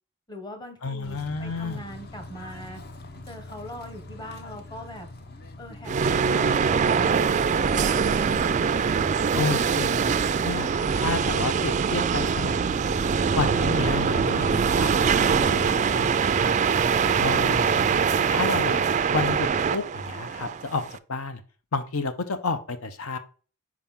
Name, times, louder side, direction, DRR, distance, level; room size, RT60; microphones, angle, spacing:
voice 1, 0.3-2.8 3.3-5.1 5.6-8.5 15.6-15.8, equal, 20° left, 6 dB, 1.1 m, -41 dB
voice 2, 0.8-1.8 9.3-12.9 13.3-16.1 17.2-18.9 19.1-20.8 21.1-21.4 21.7-23.2, left 4 dB, 80° left, 10 dB, 0.7 m, -31 dB
Bird / Train, 1.0-14.4, left 2 dB, 50° left, 0.8 m, -45 dB
sound 1, 5.9-21.0, right 6 dB, 35° right, 0.3 m, -23 dB
5.8 x 4.8 x 3.6 m, 0.38 s
head